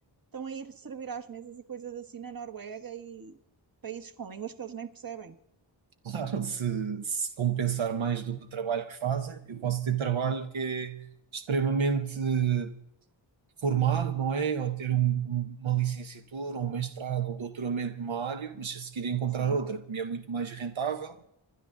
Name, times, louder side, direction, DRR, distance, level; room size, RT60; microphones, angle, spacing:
voice 1, 0.3-3.4 3.8-5.4 19.4-19.6, right 7 dB, 45° right, 1.3 m, -40 dB
voice 2, 6.0-12.8 13.6-21.2, right 7 dB, 80° right, 0.9 m, -30 dB
26.5 x 12.0 x 3.7 m
wide cardioid pair, 55°, 46 cm